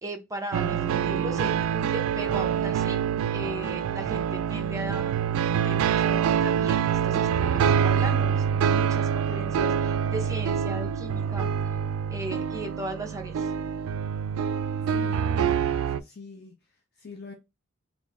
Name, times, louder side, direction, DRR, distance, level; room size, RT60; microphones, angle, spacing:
voice 1, 0.0-3.0 3.3-11.5 12.1-13.5, right 1 dB, 15° right, 0.6 m, -37 dB
sound 1, 0.5-16.0, right 8 dB, 85° right, 0.3 m, -26 dB
voice 2, 14.8-17.3, left 4 dB, 50° left, 0.6 m, -46 dB
3.0 x 2.5 x 3.4 m
head